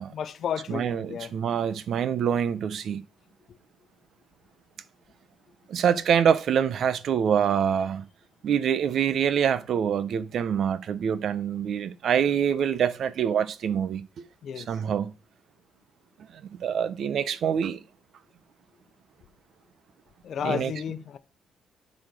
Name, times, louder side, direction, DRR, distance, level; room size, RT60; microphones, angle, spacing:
voice 1, 0.1-1.3 14.4-14.8 20.2-21.2, left 8 dB, 60° left, 0.9 m, -32 dB
voice 2, 0.7-3.0 5.7-8.0 8.4-14.0 14.6-15.1 16.5-17.8 20.4-20.7, right 8 dB, 65° right, 0.8 m, -25 dB
10.5 x 4.3 x 6.5 m
cardioid pair, 90°, 0 cm